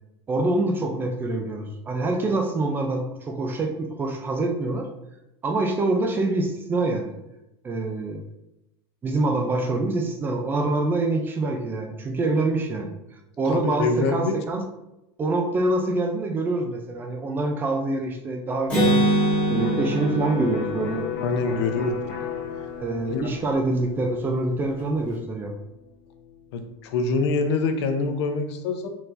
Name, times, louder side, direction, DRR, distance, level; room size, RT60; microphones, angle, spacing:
voice 1, 0.3-4.9 5.4-7.1 7.6-8.2 9.0-12.9 13.4-14.6 15.2-19.1 19.5-21.1 21.4-21.8 22.8-25.5, right 2 dB, 15° right, 3 dB, 0.4 m, -25 dB
voice 2, 13.5-14.4 21.2-22.3 22.6-22.7 23.1-23.3 26.5-28.9, left 3 dB, 90° left, 6 dB, 0.7 m, -25 dB
Acoustic guitar, 18.7-22.4, right 1 dB, 10° left, 1.6 m, -24 dB
Electric guitar, 19.6-27.2, left 8 dB, 65° left, 1.1 m, -36 dB
4.5 x 4.0 x 2.5 m, 0.90 s
supercardioid pair, 170°, 14 cm